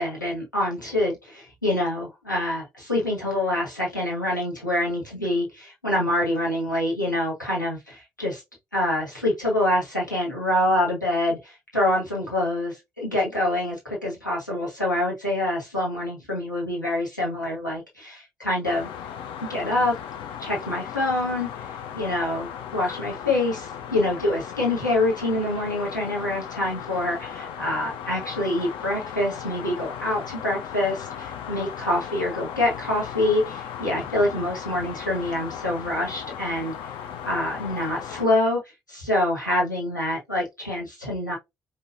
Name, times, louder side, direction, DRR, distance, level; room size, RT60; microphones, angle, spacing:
voice 1, 0.0-8.4 8.7-18.9 19.5-20.0 20.4-21.5 21.9-36.7 37.2-38.6 38.9-41.4, left 1 dB, 90° left, -3 dB, 1.3 m, -26 dB
sound 1, 18.6-38.3, left 8 dB, 60° left, 0.6 m, -37 dB
5.3 x 2.6 x 2.5 m, 0.19 s
figure-of-eight pair, 45°, 10 cm